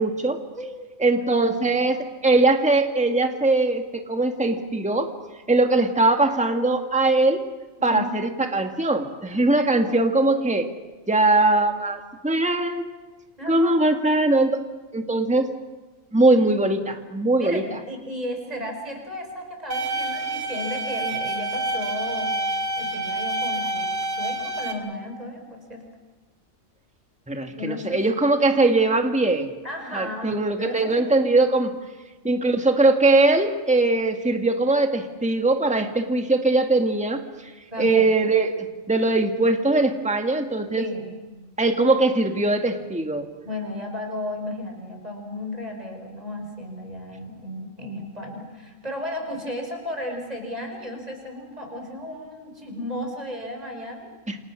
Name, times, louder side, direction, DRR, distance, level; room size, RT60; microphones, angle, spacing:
voice 1, 0.0-0.4 1.0-5.1 5.5-7.4 7.8-10.7 11.1-12.9 13.5-14.6 14.9-15.5 16.1-17.6 27.3-29.5 29.9-31.7 32.2-37.2 37.8-38.5 38.9-40.8 41.6-43.3 54.3-54.4, right 2 dB, 5° right, 5 dB, 1.7 m, -21 dB
voice 2, 0.6-0.9 1.3-1.9 7.8-8.4 13.4-13.8 17.4-25.8 27.6-28.0 29.6-31.0 37.7-38.1 40.8-41.2 43.4-54.1, left 1 dB, 30° right, 3 dB, 5.7 m, -34 dB
sound 1, 19.7-24.7, right 2 dB, 70° right, 4.2 m, -28 dB
28.5 x 27.5 x 6.3 m, 1.2 s
omnidirectional pair, 1.4 m